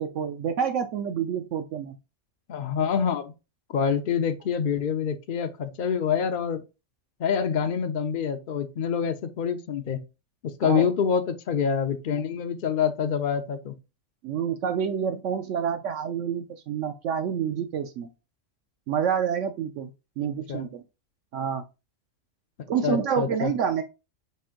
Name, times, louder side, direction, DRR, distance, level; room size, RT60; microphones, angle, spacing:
voice 1, 0.0-2.0 10.6-10.9 14.2-18.1 18.9-19.9 20.2-20.8 21.3-21.6 22.7-23.8, right 8 dB, 70° right, 0.9 m, -28 dB
voice 2, 2.5-3.3 3.7-6.6 7.2-10.0 10.6-13.7 20.5-20.7 22.8-23.5, left 7 dB, 60° left, 0.6 m, -26 dB
5.3 x 2.5 x 3.7 m
omnidirectional pair, 1.3 m